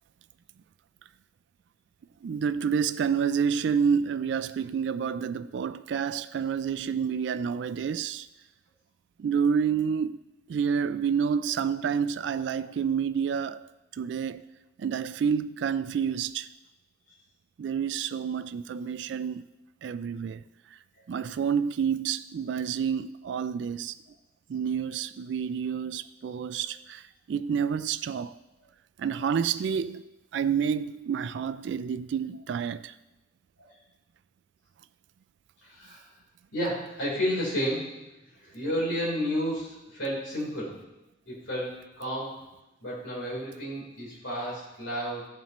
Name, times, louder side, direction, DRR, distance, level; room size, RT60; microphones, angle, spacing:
voice 1, 2.2-8.3 9.2-10.2 10.5-13.6 13.9-14.4 14.8-16.5 17.6-19.4 19.8-20.4 21.1-23.9 24.5-27.0 27.3-28.3 29.0-30.0 30.3-32.9, right 7 dB, 65° right, 0.3 m, -29 dB
voice 2, 35.6-36.1 36.5-37.9 38.3-40.8 41.3-42.4 42.8-45.3, equal, 90° left, 3.7 m, -31 dB
16.0 x 7.2 x 3.0 m
head